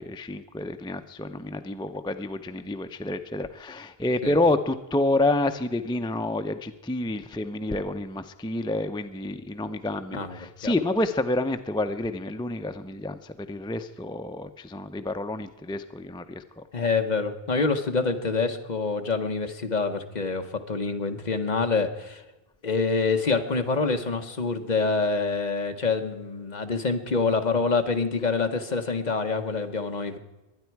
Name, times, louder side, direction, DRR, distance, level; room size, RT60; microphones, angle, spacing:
voice 1, 0.0-16.9, left 2 dB, 10° left, 9 dB, 0.3 m, -29 dB
voice 2, 16.7-22.2 22.6-30.2, left 4 dB, 45° left, 6 dB, 1.1 m, -26 dB
22.5 x 9.8 x 4.6 m, 1.0 s
omnidirectional pair, 1.0 m